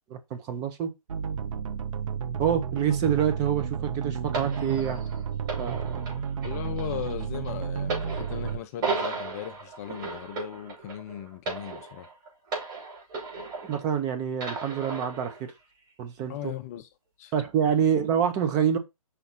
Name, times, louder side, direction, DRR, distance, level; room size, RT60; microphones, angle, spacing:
voice 1, 0.1-0.9 2.4-5.0 5.6-6.0 13.6-15.5 16.0-16.5 17.3-18.8, right 8 dB, 20° right, 0.8 m, -27 dB
sound 1, 1.1-8.6, right 7 dB, 65° right, 0.6 m, -32 dB
sound 2, 4.3-14.0 14.4-15.4 16.2-16.3, right 3 dB, 35° right, 4.0 m, -35 dB
voice 2, 6.4-12.1 16.3-16.9 17.2-17.3 17.8-17.9, left 11 dB, 25° left, 0.5 m, -38 dB
5.7 x 4.2 x 4.1 m
hypercardioid pair, 150°, 18 cm